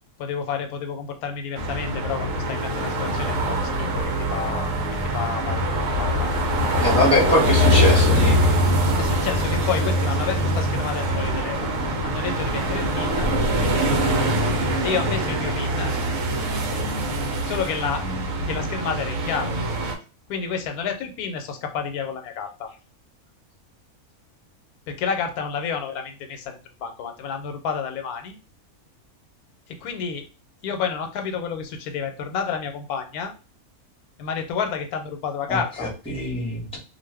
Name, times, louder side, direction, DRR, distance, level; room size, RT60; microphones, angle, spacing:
voice 1, 0.2-4.7 5.1-6.3 8.9-13.3 14.8-15.9 17.4-18.0 18.5-19.5 20.3-22.7 24.9-28.4 29.7-30.3 30.6-33.3 34.2-35.9, left 6 dB, 90° left, 6 dB, 1.1 m, -30 dB
sound 1, 1.6-19.9, equal, 70° right, 1.1 m, -23 dB
voice 2, 6.8-8.6 35.5-36.8, left 1 dB, 5° left, -4 dB, 1.0 m, -23 dB
2.5 x 2.5 x 3.3 m, 0.32 s
omnidirectional pair, 1.5 m